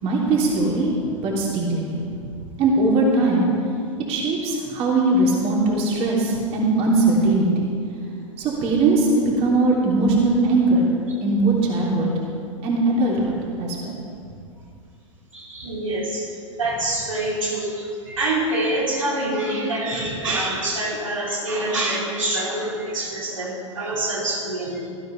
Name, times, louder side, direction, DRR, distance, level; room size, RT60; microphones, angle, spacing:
voice 1, 0.0-2.3 2.6-3.5 4.1-7.7 8.4-10.9 11.2-12.1 12.6-14.0, right 2 dB, 40° right, -3 dB, 3.1 m, -20 dB
voice 2, 15.3-16.3 16.6-24.9, right 1 dB, 80° right, -5 dB, 3.5 m, -26 dB
19.0 x 13.5 x 3.4 m, 2.4 s
figure-of-eight pair, 95°, 16 cm